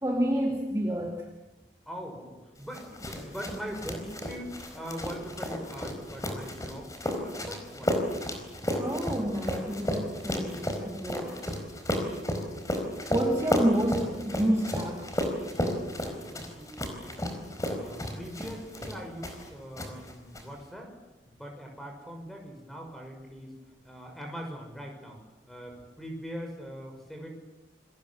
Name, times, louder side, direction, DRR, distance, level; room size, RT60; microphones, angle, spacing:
voice 1, 0.0-1.3 8.8-11.3 13.1-15.1, right 1 dB, 15° right, 0 dB, 2.5 m, -29 dB
voice 2, 1.9-8.1 16.1-17.2 17.6-20.9 21.3-23.6 23.8-27.3, equal, ahead, 3 dB, 6.2 m, -42 dB
sound 1, 2.7-19.5 19.8-20.4, left 1 dB, 20° left, 4.4 m, -33 dB
29.5 x 23.5 x 7.4 m, 1.0 s
head